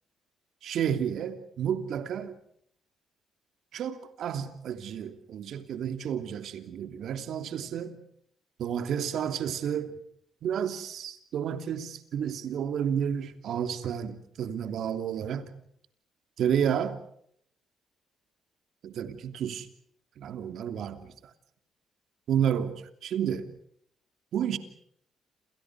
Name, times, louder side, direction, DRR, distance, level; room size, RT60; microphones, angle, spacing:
voice 1, 0.6-2.3 3.7-8.0 8.6-9.9 10.4-15.5 16.4-17.0 18.8-19.7 20.2-21.1 22.3-23.5 24.3-24.6, right 8 dB, 70° right, 2.9 m, -31 dB
29.5 x 28.5 x 4.9 m
cardioid pair, 90°, 0 cm